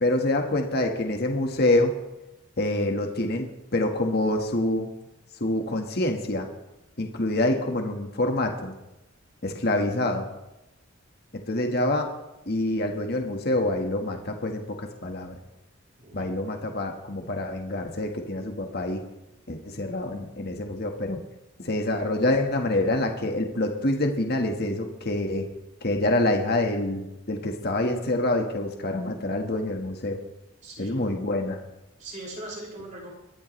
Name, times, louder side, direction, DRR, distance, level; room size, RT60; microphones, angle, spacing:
voice 1, 0.0-1.9 2.6-4.9 5.4-6.5 7.0-8.7 9.4-10.3 11.5-12.1 12.5-15.4 16.1-19.0 19.5-21.2 21.6-25.5 25.8-30.2 30.8-31.6, left 1 dB, 50° left, 3 dB, 1.6 m, -26 dB
voice 2, 30.6-31.0 32.0-33.1, right 1 dB, 35° right, -3 dB, 6.1 m, -40 dB
22.5 x 13.5 x 3.3 m, 0.93 s
head